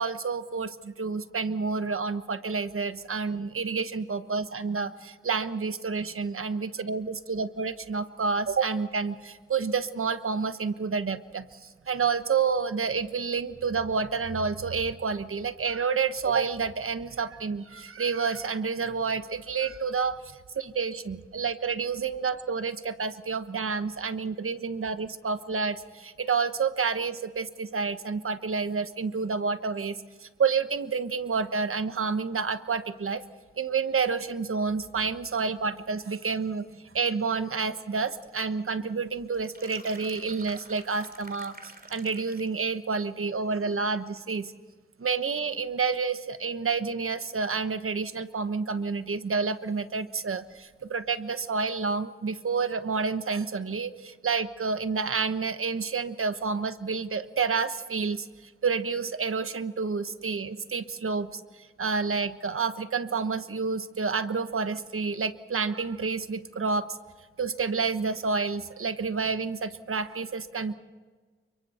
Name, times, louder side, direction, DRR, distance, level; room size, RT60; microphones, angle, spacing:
voice 1, 0.0-33.2 33.6-36.7 36.9-44.5 45.0-67.0 67.4-70.7, right 5 dB, 90° right, 11 dB, 1.2 m, -29 dB
sound 1, 39.3-42.6, right 3 dB, 45° right, 2.7 m, -48 dB
30.0 x 25.0 x 4.3 m, 1.4 s
wide cardioid pair, 70°, 21 cm